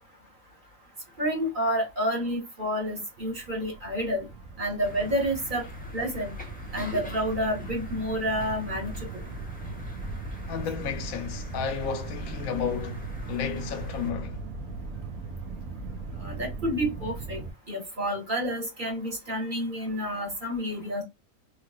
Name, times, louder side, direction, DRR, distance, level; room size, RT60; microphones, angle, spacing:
voice 1, 1.2-4.3 4.6-5.7 5.9-6.3 6.7-9.3 16.2-17.4 17.7-21.0, equal, 35° right, 1.4 m, -29 dB
sound 1, 3.2-17.5, right 4 dB, 90° right, 1.2 m, -39 dB
sound 2, 4.8-14.1, left 2 dB, 10° left, 0.7 m, -43 dB
voice 2, 10.5-14.4, left 7 dB, 85° left, 1.1 m, -32 dB
3.1 x 2.9 x 2.3 m
omnidirectional pair, 1.4 m